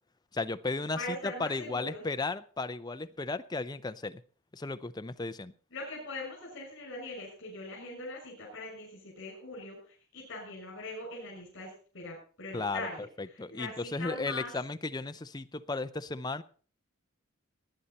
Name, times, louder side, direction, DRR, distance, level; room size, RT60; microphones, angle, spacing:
voice 1, 0.3-1.0 1.2-4.2 4.5-5.5 12.5-12.9 13.2-16.4, left 3 dB, 20° left, 11 dB, 0.6 m, -35 dB
voice 2, 0.9-2.0 5.7-14.5, left 2 dB, 60° left, -3 dB, 6.3 m, -41 dB
19.0 x 10.0 x 4.2 m, 0.41 s
head